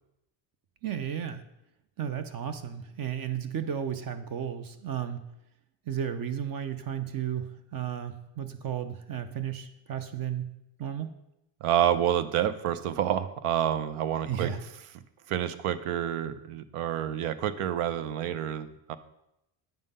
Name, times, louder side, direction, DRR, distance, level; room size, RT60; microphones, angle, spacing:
voice 1, 0.8-1.4 2.0-5.2 5.9-10.5 10.8-11.1 14.3-14.6, right 9 dB, 45° right, 10 dB, 0.6 m, -33 dB
voice 2, 11.6-14.5 15.3-19.0, right 10 dB, 85° right, 14 dB, 0.8 m, -28 dB
8.9 x 5.6 x 5.4 m, 0.85 s
cardioid pair, 180°, 50 cm